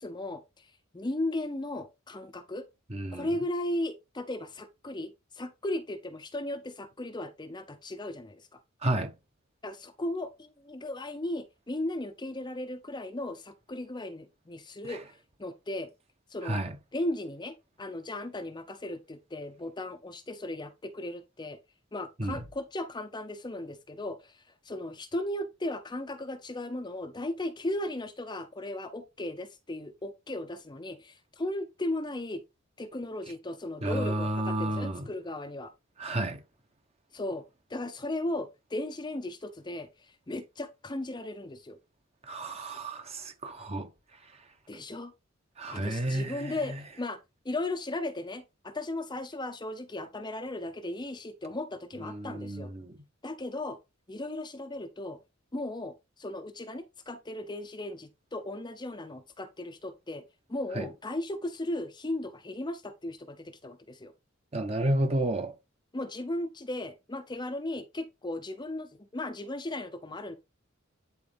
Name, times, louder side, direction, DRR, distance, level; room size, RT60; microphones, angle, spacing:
voice 1, 0.0-2.7 3.1-8.6 9.6-15.0 15.4-15.9 16.3-16.6 16.9-21.6 21.9-32.4 32.8-35.7 37.1-37.4 37.7-41.8 44.7-45.1 45.7-47.2 47.4-52.7 53.2-53.8 54.1-55.2 55.5-60.2 60.5-64.1 65.9-70.4, left 1 dB, 20° left, 0.7 m, -36 dB
voice 2, 2.9-3.3 8.8-9.1 14.8-15.0 16.4-16.8 22.2-22.4 33.8-35.1 36.0-36.4 42.2-43.9 45.6-46.8 52.0-52.9 60.7-60.9 64.5-65.5, right 1 dB, 30° right, 1.0 m, -31 dB
9.6 x 4.0 x 3.4 m
head